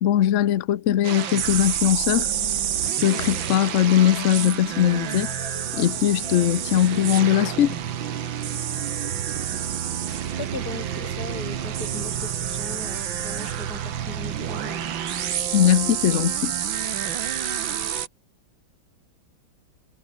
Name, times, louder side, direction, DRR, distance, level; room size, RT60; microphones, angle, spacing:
voice 1, 0.0-2.3 3.0-5.3 5.7-7.8 15.5-16.5, left 11 dB, 70° left, 0.7 m, -20 dB
sound 1, 1.0-18.1, right 9 dB, 75° right, 2.1 m, -28 dB
sound 2, 2.2-7.7, left 1 dB, 15° left, 4.2 m, -43 dB
voice 2, 10.4-14.9, left 4 dB, 50° left, 3.7 m, -38 dB
omnidirectional pair, 2.2 m